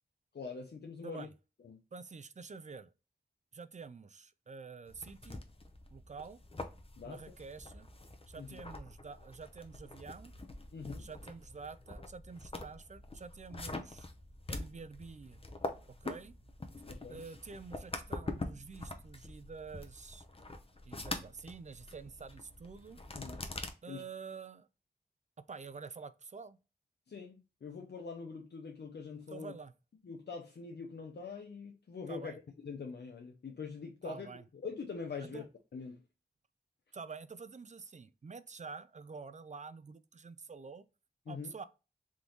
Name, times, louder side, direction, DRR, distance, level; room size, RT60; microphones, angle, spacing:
voice 1, 0.3-1.3 1.6-1.8 7.0-7.2 8.4-8.6 10.7-11.1 16.9-17.2 23.1-23.5 23.9-24.0 27.1-29.5 30.0-34.3 34.6-35.5 35.7-36.0 41.3-41.5, left 5 dB, 75° left, 0.6 m, -44 dB
voice 2, 1.9-2.9 3.5-5.4 5.9-6.4 7.0-7.9 8.3-10.3 11.0-14.1 14.5-15.4 16.0-16.3 17.1-20.2 20.8-23.0 23.8-24.7 25.5-26.6 29.3-29.7 32.1-32.4 34.0-34.4 35.2-35.4 36.9-40.8 41.3-41.6, right 5 dB, 45° right, 0.4 m, -48 dB
sound 1, 4.9-23.7, left 2 dB, 35° left, 0.7 m, -45 dB
3.6 x 3.1 x 3.8 m
wide cardioid pair, 75°, 17 cm